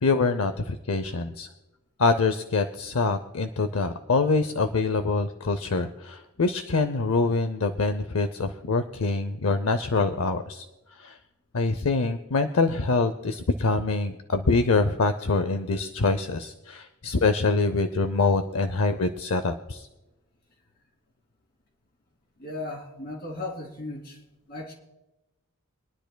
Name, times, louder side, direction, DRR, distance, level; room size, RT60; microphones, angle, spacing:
voice 1, 0.0-1.5 2.0-10.6 11.0-11.2 11.5-19.9, left 3 dB, 75° left, 10 dB, 0.6 m, -25 dB
voice 2, 22.4-24.2 24.5-24.7, left 2 dB, 50° left, 0 dB, 2.6 m, -36 dB
25.5 x 10.5 x 2.2 m, 1.0 s
head